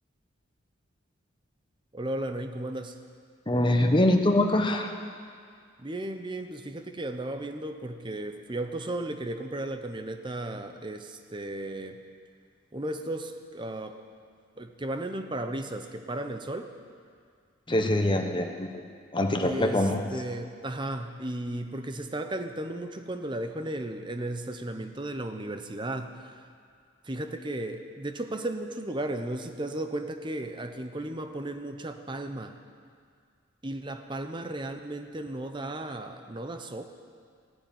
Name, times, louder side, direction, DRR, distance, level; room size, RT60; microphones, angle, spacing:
voice 1, 1.9-3.0 5.8-12.0 12.7-14.0 14.6-16.7 19.4-26.5 27.0-32.5 33.6-36.8, right 1 dB, 25° right, 7 dB, 0.9 m, -35 dB
voice 2, 3.5-4.9 17.7-18.8 19.1-20.0, left 1 dB, 25° left, 4 dB, 1.1 m, -24 dB
16.0 x 9.7 x 9.2 m, 2.2 s
head